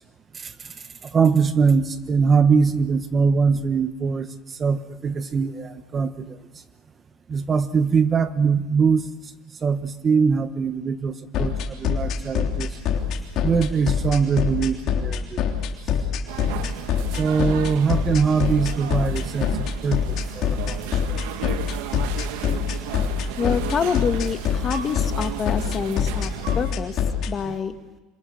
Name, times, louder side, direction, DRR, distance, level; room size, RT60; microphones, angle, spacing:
voice 1, 0.3-0.7 1.0-4.3 4.6-6.4 7.3-9.1 9.6-12.7 13.4-15.4 17.2-20.8 21.1-21.2 27.5-27.6, right 5 dB, 25° right, 11 dB, 1.3 m, -22 dB
sound 1, 11.3-27.3, left 8 dB, 50° left, 3.4 m, -24 dB
sound 2, 16.3-26.7, right 11 dB, 80° right, 1.6 m, -35 dB
voice 2, 23.4-27.0 27.3-27.8, left 6 dB, 30° left, 8 dB, 1.7 m, -26 dB
27.0 x 26.5 x 6.5 m, 1.0 s
supercardioid pair, 135°, 0 cm